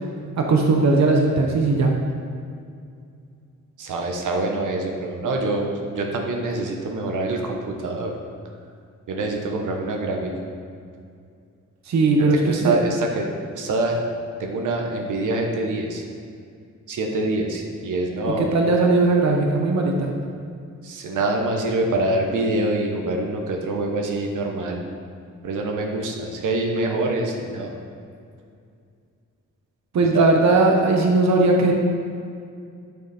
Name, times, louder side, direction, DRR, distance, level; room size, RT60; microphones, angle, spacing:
voice 1, 0.4-1.9 11.9-12.8 18.4-20.1 29.9-31.7, right 3 dB, 65° right, 1 dB, 1.0 m, -18 dB
voice 2, 3.8-8.2 9.1-10.5 12.3-14.0 14.4-16.0 16.9-18.5 20.8-24.8 25.4-27.8 30.1-30.3, right 2 dB, 90° right, 1 dB, 1.2 m, -25 dB
10.5 x 6.7 x 4.3 m, 2.3 s
wide cardioid pair, 160°, 30 cm